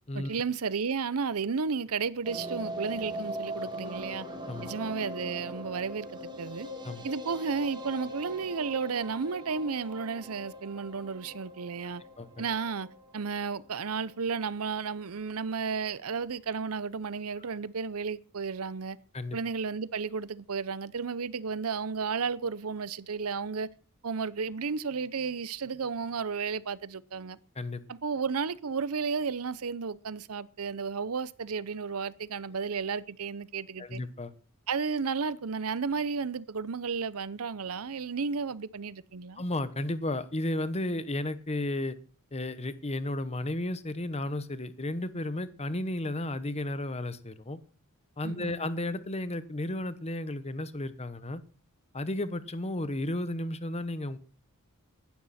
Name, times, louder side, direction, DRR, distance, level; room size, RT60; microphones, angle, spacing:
voice 1, 0.1-4.3 4.6-6.7 7.0-12.0 12.4-12.9 13.1-19.0 19.3-23.7 24.0-27.4 27.9-34.0 34.7-39.4 48.2-48.5, right 5 dB, 70° right, 0.7 m, -33 dB
sound 1, 2.2-14.4 14.7-14.8 15.0-15.1 15.4-15.5, right 1 dB, 20° right, 3.1 m, -41 dB
voice 2, 33.8-34.3 39.4-42.0 42.3-47.6 48.2-51.4 51.9-54.2, left 1 dB, 30° left, 1.1 m, -33 dB
16.0 x 12.0 x 4.3 m
head